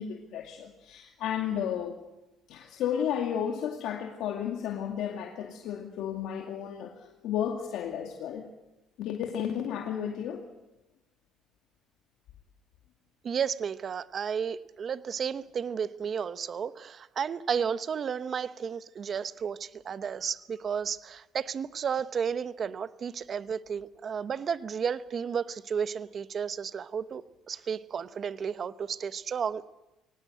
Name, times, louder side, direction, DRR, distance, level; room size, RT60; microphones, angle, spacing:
voice 1, 0.0-2.0 2.5-8.4 9.0-10.4, left 9 dB, 70° left, 2 dB, 2.4 m, -33 dB
voice 2, 13.2-29.7, right 7 dB, 45° right, 13 dB, 1.0 m, -33 dB
23.0 x 19.0 x 7.9 m, 0.99 s
supercardioid pair, 95°, 0 cm